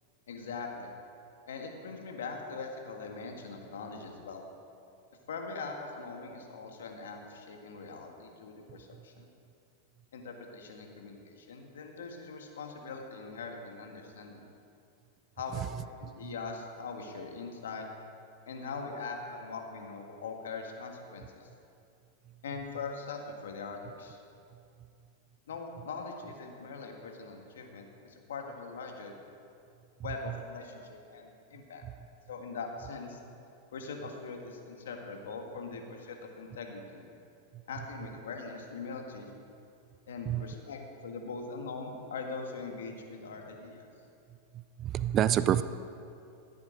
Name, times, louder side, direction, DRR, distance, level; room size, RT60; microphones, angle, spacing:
voice 1, 0.3-0.9 1.5-4.5 5.3-9.3 10.1-14.5 15.4-17.9 18.5-21.5 22.4-24.2 25.5-29.1 30.0-31.8 32.3-33.2 33.7-37.0 37.7-39.3 40.1-43.9, left 4 dB, 85° left, 3 dB, 1.6 m, -41 dB
voice 2, 44.8-45.6, right 11 dB, 35° right, 13 dB, 0.4 m, -27 dB
13.5 x 8.2 x 5.1 m, 2.5 s
hypercardioid pair, 115°, 0 cm